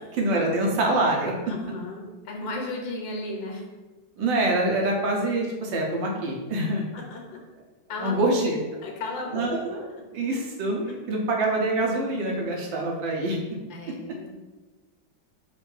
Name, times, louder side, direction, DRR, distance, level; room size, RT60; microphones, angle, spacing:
voice 1, 0.1-1.3 4.2-6.8 8.0-8.6 9.3-9.9 10.1-13.4, right 2 dB, 80° right, 0 dB, 1.5 m, -25 dB
voice 2, 1.5-3.6 6.9-7.4 7.9-8.3 8.8-9.5 13.7-14.4, left 2 dB, 80° left, 1 dB, 1.5 m, -35 dB
4.6 x 2.5 x 4.4 m, 1.2 s
omnidirectional pair, 2.1 m